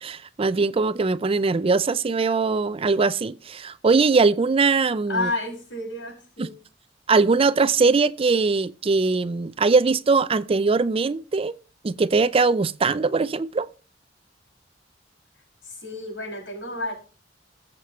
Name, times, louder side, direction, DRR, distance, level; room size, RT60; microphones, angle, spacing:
voice 1, 0.0-5.3 6.4-6.5 7.1-11.5 11.8-13.7, right 4 dB, 30° right, 0.4 m, -21 dB
voice 2, 5.1-6.5 15.6-16.9, left 2 dB, 85° left, 6.1 m, -30 dB
19.5 x 7.5 x 3.1 m
head